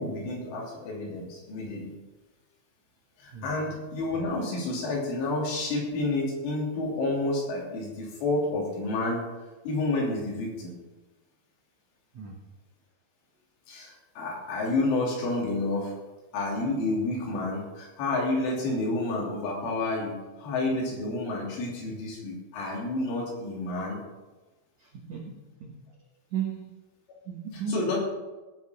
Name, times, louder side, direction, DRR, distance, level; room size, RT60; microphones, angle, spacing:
voice 1, 0.0-1.9 3.2-9.2 9.7-10.7 13.7-15.9 16.3-24.0 27.7-28.0, left 2 dB, 85° left, -3 dB, 5.6 m, -30 dB
voice 2, 24.8-25.8 26.3-26.7 27.3-27.9, right 6 dB, 70° right, -2 dB, 1.7 m, -35 dB
17.0 x 6.0 x 5.8 m, 1.2 s
omnidirectional pair, 5.4 m